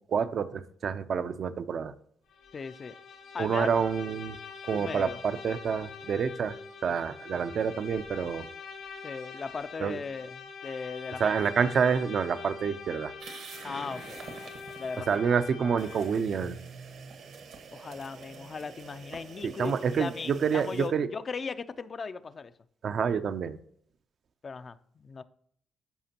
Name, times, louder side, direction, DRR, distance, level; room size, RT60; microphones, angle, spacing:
voice 1, 0.1-1.9 3.4-4.4 4.6-8.5 9.8-10.0 11.2-13.1 15.1-16.6 19.4-21.1 22.8-23.6, right 6 dB, 55° right, 0.5 m, -28 dB
Bowed string instrument, 2.3-16.2, left 5 dB, 80° left, 3.5 m, -44 dB
voice 2, 2.5-3.0 3.3-3.7 4.7-5.2 9.0-11.4 13.6-14.2 14.5-15.2 17.7-22.5 24.4-25.2, left 5 dB, 40° left, 0.5 m, -38 dB
sound 1, 13.2-15.2 15.8-20.9, right 4 dB, 75° right, 1.4 m, -46 dB
12.5 x 5.0 x 2.9 m
cardioid pair, 90°, 0 cm